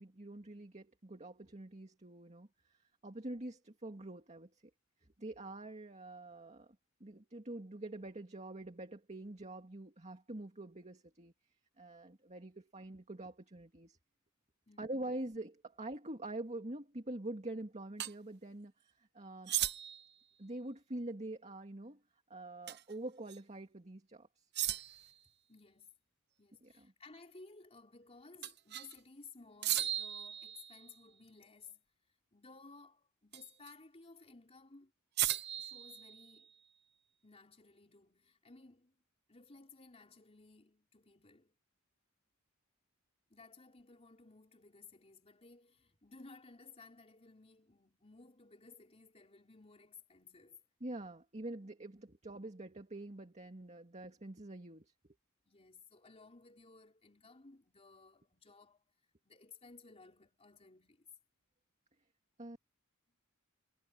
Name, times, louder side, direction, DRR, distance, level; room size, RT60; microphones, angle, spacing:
voice 1, 0.0-4.6 5.2-6.8 7.0-11.3 11.8-14.0 14.8-19.6 20.4-22.0 22.3-24.5 26.6-26.9 50.8-54.9 62.4-62.6, right 1 dB, 35° right, 2.1 m, -45 dB
voice 2, 14.7-15.0 25.5-25.9 26.4-31.8 32.3-34.9 35.6-36.5 37.2-38.9 39.3-41.5 43.3-50.6 55.5-58.8 59.2-61.1, left 3 dB, 30° left, 3.8 m, -58 dB
sound 1, 18.0-18.1 19.5-20.1 22.7-22.9 23.3-23.4 24.5-25.1 28.4-28.9 29.6-31.0 33.3-33.7 35.2-36.5, right 12 dB, 55° right, 0.9 m, -37 dB
head